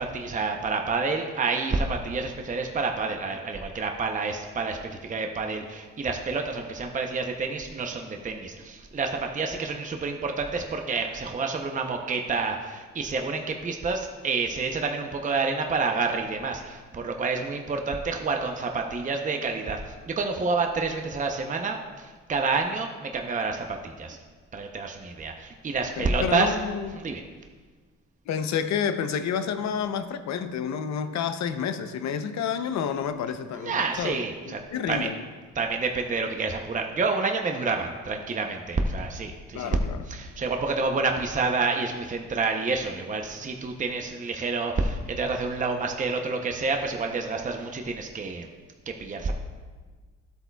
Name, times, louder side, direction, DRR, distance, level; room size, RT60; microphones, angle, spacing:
voice 1, 0.0-24.2 24.5-26.6 26.9-27.2 33.5-34.6 34.9-35.1 35.5-39.8 40.1-48.5 48.9-49.3, right 4 dB, 25° right, 3 dB, 0.7 m, -28 dB
voice 2, 26.0-27.0 28.3-34.2 34.5-35.2 39.5-40.0 41.0-41.1, left 7 dB, 65° left, 9 dB, 0.7 m, -29 dB
12.5 x 8.0 x 2.3 m, 1.5 s
cardioid pair, 90°, 30 cm